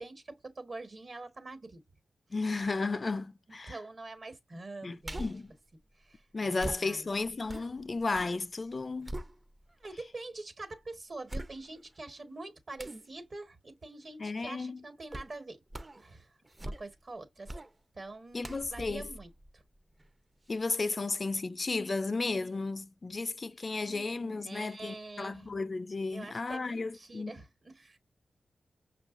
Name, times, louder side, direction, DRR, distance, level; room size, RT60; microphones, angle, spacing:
voice 1, 0.0-1.8 3.5-5.3 6.0-6.2 6.5-7.1 9.8-15.6 16.0-16.3 16.6-17.5 17.9-19.6 23.8-25.5 26.1-28.0, right 2 dB, 55° right, 1.2 m, -45 dB
voice 2, 2.3-3.8 4.8-5.5 6.3-9.2 14.2-14.8 18.3-19.1 20.5-27.3, left 3 dB, 50° left, 0.4 m, -34 dB
sound 1, 5.0-5.5 6.6-8.4 8.7-9.8 10.4-10.5 11.3-12.0 12.8-13.1 15.1-15.4 15.7-16.1 16.4-17.1 17.5-17.7 18.4-20.1 20.5-20.6, right 1 dB, 30° right, 0.5 m, -42 dB
5.7 x 2.3 x 2.5 m
cardioid pair, 40°, 0 cm